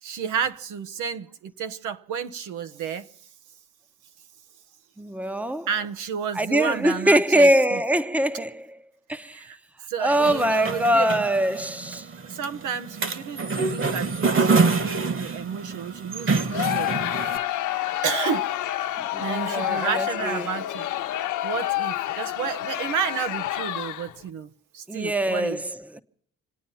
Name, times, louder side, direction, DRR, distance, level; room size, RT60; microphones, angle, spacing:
voice 1, 0.0-3.1 5.7-7.8 9.3-9.6 9.9-11.3 12.2-17.5 18.0-18.5 19.2-20.9 21.4-24.5 24.7-25.6, right 7 dB, 85° right, 1.0 m, -31 dB
voice 2, 5.0-5.7 6.3-8.7 9.1-9.4 10.0-12.1 19.1-20.5 24.9-26.0, right 1 dB, 5° right, 0.8 m, -23 dB
sound 1, 10.1-17.4, right 4 dB, 45° right, 1.7 m, -26 dB
Crowd, 16.5-24.2, left 13 dB, 80° left, 0.9 m, -28 dB
27.0 x 9.2 x 5.6 m
cardioid pair, 90°, 30 cm